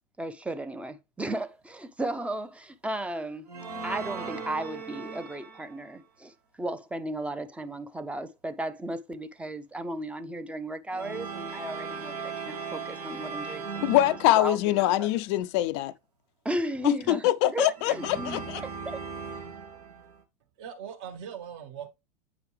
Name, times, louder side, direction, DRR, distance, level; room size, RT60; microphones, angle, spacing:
voice 1, 0.2-3.5 3.8-14.0 14.3-15.1 16.4-19.0, right 1 dB, 5° right, 0.5 m, -35 dB
sound 1, 3.5-5.9 10.9-14.9 17.8-20.2, right 5 dB, 75° right, 1.5 m, -38 dB
voice 2, 13.8-15.9 16.8-18.6, left 14 dB, 45° left, 0.4 m, -24 dB
voice 3, 20.6-21.9, right 8 dB, 50° right, 1.4 m, -40 dB
8.7 x 4.9 x 3.3 m
figure-of-eight pair, 90°, 20 cm